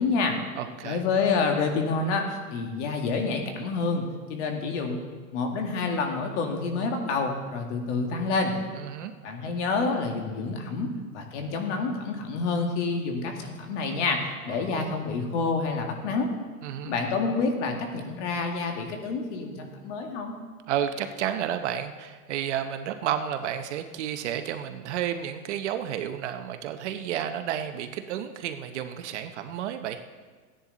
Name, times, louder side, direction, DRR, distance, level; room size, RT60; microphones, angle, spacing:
voice 1, 0.0-0.4 0.8-5.0 5.3-8.5 9.2-16.3 16.8-20.3, left 4 dB, 50° left, 3 dB, 2.0 m, -28 dB
voice 2, 0.6-1.0 8.7-9.1 14.5-14.9 16.6-17.0 20.7-30.0, right 10 dB, 50° right, 8 dB, 0.8 m, -31 dB
15.5 x 10.5 x 4.0 m, 1.4 s
supercardioid pair, 155°, 46 cm